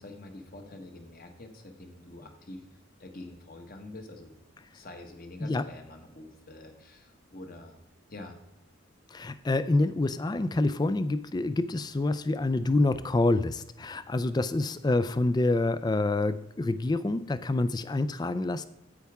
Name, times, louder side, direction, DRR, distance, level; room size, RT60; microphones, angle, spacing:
voice 1, 0.0-2.6 3.0-4.3 4.7-7.7 8.1-8.4, left 2 dB, 45° left, 5 dB, 1.2 m, -46 dB
voice 2, 9.1-18.6, left 2 dB, 20° left, 14 dB, 0.3 m, -27 dB
9.9 x 8.2 x 3.5 m, 0.90 s
head